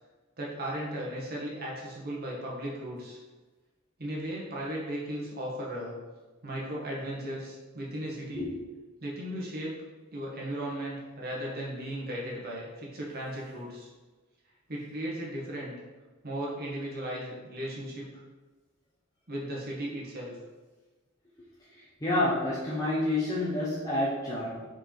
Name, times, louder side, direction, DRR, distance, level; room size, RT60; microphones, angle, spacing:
voice 1, 0.4-3.2 4.0-6.0 6.4-8.5 9.0-9.7 10.1-13.9 14.7-15.7 16.2-18.0 19.3-20.3, right 1 dB, 45° right, -4 dB, 1.6 m, -36 dB
voice 2, 21.7-24.6, left 1 dB, 15° left, -8 dB, 1.0 m, -29 dB
5.0 x 4.9 x 4.5 m, 1.3 s
head